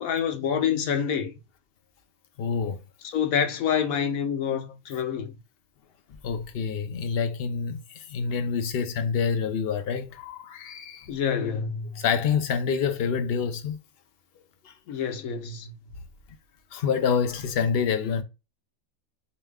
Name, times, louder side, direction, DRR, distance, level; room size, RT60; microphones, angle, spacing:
voice 1, 0.0-1.3 3.0-5.3 11.1-12.0 14.9-15.7, left 7 dB, 90° left, 1.2 m, -27 dB
voice 2, 2.4-2.8 6.2-11.1 12.0-13.8 14.6-14.7 16.7-18.2, left 6 dB, 55° left, 0.8 m, -27 dB
6.8 x 3.1 x 2.3 m
omnidirectional pair, 1.4 m